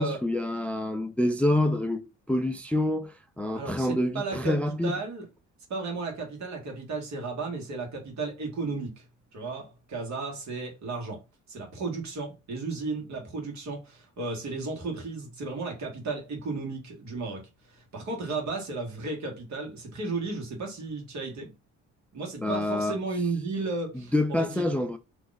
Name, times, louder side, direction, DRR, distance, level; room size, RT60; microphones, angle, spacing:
voice 1, 0.0-5.0 22.4-23.0 23.9-25.0, left 1 dB, 5° left, 0.3 m, -27 dB
voice 2, 3.5-5.2 5.7-9.0 9.3-11.2 11.5-21.5 22.1-24.7, right 3 dB, 65° right, 1.5 m, -34 dB
2.9 x 2.5 x 3.9 m
cardioid pair, 90°, 30 cm